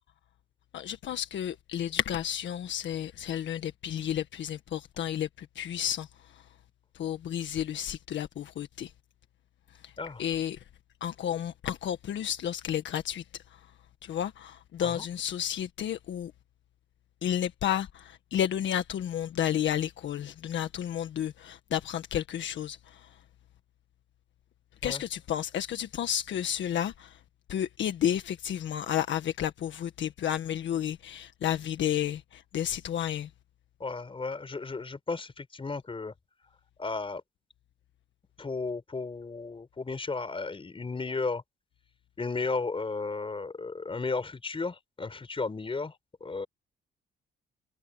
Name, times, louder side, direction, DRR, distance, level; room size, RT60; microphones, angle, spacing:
voice 1, 0.7-6.1 7.0-8.9 10.2-10.6 11.0-13.2 14.0-16.3 17.2-23.0 24.8-27.1 27.5-33.3, left 10 dB, 70° left, 1.6 m, -31 dB
voice 2, 33.8-36.1 36.8-37.2 38.4-41.4 42.2-45.9 46.2-46.5, left 4 dB, 25° left, 4.9 m, -34 dB
cardioid pair, 90°, 20 cm